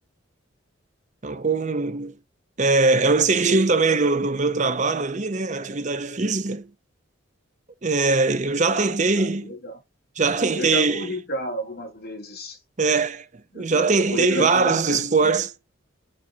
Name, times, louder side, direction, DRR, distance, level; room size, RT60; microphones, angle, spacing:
voice 1, 1.2-2.2 2.6-6.7 7.8-9.5 10.2-11.1 12.8-13.3 13.5-15.5, right 3 dB, 35° right, 0.7 m, -21 dB
voice 2, 8.5-9.8 10.5-12.6 13.5-15.4, equal, 50° left, 3.5 m, -32 dB
7.6 x 4.9 x 3.9 m
head